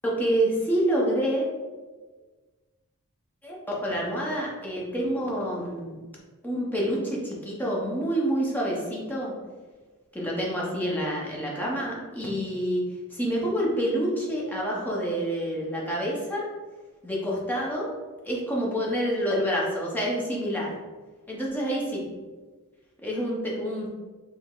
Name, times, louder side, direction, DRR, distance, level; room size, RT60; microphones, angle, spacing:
voice 1, 0.0-1.5 3.4-6.0 6.4-9.3 10.1-12.8 13.1-16.4 17.0-17.9 18.2-20.7 21.3-22.0 23.0-23.9, equal, 10° left, -4 dB, 0.8 m, -27 dB
5.0 x 2.1 x 3.7 m, 1.3 s
head